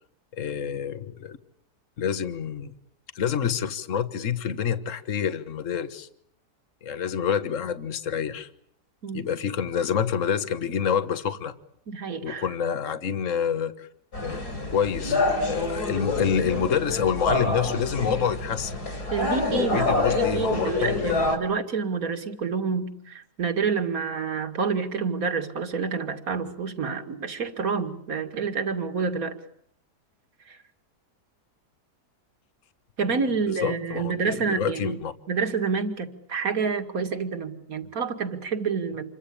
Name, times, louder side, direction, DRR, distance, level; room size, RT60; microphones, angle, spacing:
voice 1, 0.3-1.4 2.0-2.7 3.2-6.1 6.8-8.5 9.1-11.5 12.2-13.9 14.2-15.2 15.5-18.8 19.5-21.3 33.0-33.1 33.6-35.1, left 7 dB, 50° left, 11 dB, 1.7 m, -27 dB
voice 2, 11.9-12.5 19.1-29.3 30.5-30.6 33.0-35.0 35.3-39.0, right 5 dB, 55° right, 6 dB, 2.6 m, -28 dB
sound 1, 14.1-21.4, left 2 dB, 65° left, 6.1 m, -27 dB
28.0 x 23.5 x 8.6 m, 0.68 s
omnidirectional pair, 1.8 m